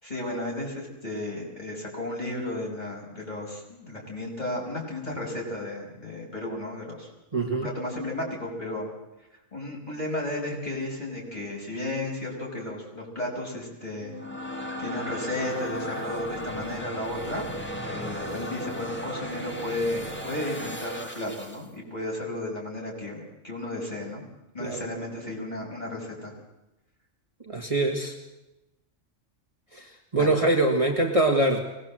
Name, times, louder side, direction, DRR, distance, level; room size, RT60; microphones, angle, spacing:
voice 1, 0.0-7.1 7.4-8.9 9.5-14.1 14.4-17.5 17.9-24.2 24.5-26.3 30.2-30.3, left 1 dB, 30° left, -3 dB, 6.6 m, -33 dB
voice 2, 7.3-7.7 24.6-24.9 27.4-28.1 29.7-31.6, right 2 dB, 25° right, 1 dB, 1.9 m, -24 dB
sound 1, 13.9-21.7, equal, 10° left, 2.1 m, -36 dB
23.0 x 19.5 x 7.7 m, 0.97 s
omnidirectional pair, 1.4 m